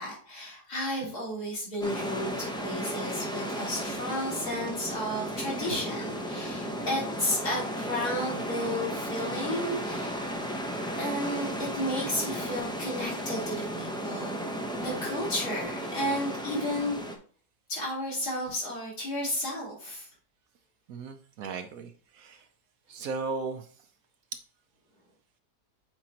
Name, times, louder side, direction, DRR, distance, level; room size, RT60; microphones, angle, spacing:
voice 1, 0.0-10.3 11.0-14.4 14.8-17.0 17.7-20.1 21.5-21.6, left 1 dB, 70° left, -5 dB, 3.9 m, -33 dB
sound 1, 1.8-17.2, equal, 5° left, 0.4 m, -34 dB
voice 2, 20.9-22.5 22.9-23.7, right 4 dB, 65° right, 7 dB, 1.0 m, -36 dB
7.7 x 4.6 x 2.9 m, 0.44 s
omnidirectional pair, 1.7 m